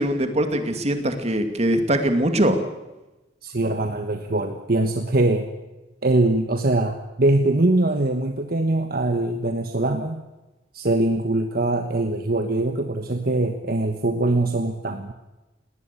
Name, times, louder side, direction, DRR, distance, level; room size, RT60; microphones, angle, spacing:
voice 1, 0.0-2.6, right 1 dB, 35° right, 7 dB, 2.4 m, -22 dB
voice 2, 3.4-5.5 6.0-10.2 10.7-15.1, right 2 dB, 55° right, 6 dB, 1.3 m, -22 dB
19.5 x 18.5 x 8.4 m, 1.0 s
head